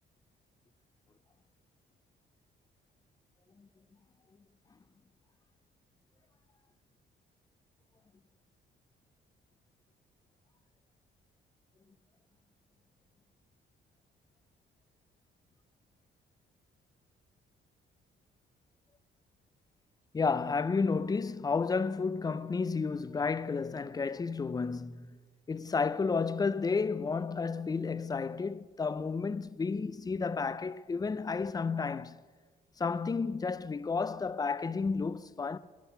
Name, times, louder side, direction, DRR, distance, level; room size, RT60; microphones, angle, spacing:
voice 1, 20.1-25.2 25.5-32.3 32.8-35.6, left 4 dB, 20° left, 0.4 m, -32 dB
11.5 x 10.5 x 5.6 m
cardioid pair, 90°, 20 cm